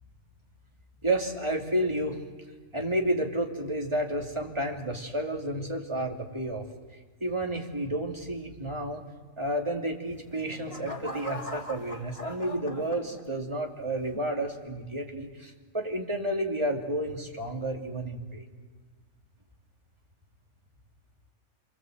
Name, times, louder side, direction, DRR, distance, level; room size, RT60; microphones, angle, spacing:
voice 1, 1.0-2.2 2.7-6.7 7.2-9.0 9.4-18.4, right 1 dB, 20° right, 1 dB, 2.6 m, -31 dB
sound 1, 10.0-13.6 14.1-14.5, left 2 dB, 25° left, 1.8 m, -41 dB
27.5 x 23.5 x 7.9 m, 1.4 s
omnidirectional pair, 1.4 m